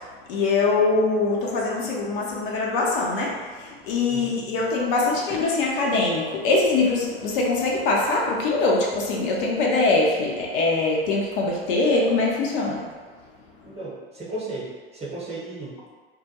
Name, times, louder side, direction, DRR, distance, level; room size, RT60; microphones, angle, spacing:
voice 1, 0.3-12.9, left 3 dB, 60° left, -2 dB, 0.6 m, -23 dB
voice 2, 13.6-15.9, right 2 dB, 20° right, -7 dB, 0.9 m, -35 dB
2.3 x 2.1 x 2.8 m, 1.5 s
hypercardioid pair, 90°, 31 cm